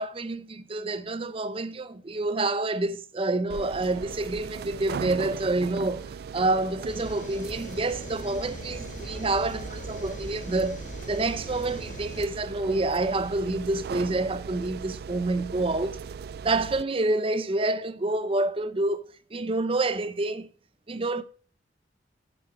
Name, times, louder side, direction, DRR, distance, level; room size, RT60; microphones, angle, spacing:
voice 1, 0.0-10.8 11.1-16.0 16.4-19.0 19.3-20.5 20.9-21.2, right 2 dB, 30° right, 0.7 m, -28 dB
sound 1, 3.5-16.8, right 6 dB, 60° right, 0.3 m, -38 dB
sound 2, 6.9-12.3, left 1 dB, 45° left, 1.3 m, -41 dB
9.2 x 7.5 x 4.7 m
head